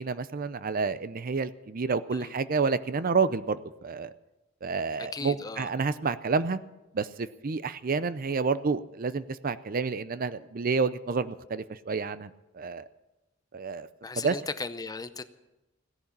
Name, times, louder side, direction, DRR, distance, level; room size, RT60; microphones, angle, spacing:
voice 1, 0.0-4.1 4.6-6.6 6.9-12.3 12.5-12.9 13.5-13.9 14.2-14.3, right 4 dB, 45° right, 15 dB, 0.5 m, -29 dB
voice 2, 5.0-5.7 14.0-15.2, left 4 dB, 20° left, 12 dB, 0.6 m, -37 dB
16.0 x 10.5 x 7.3 m, 0.98 s
head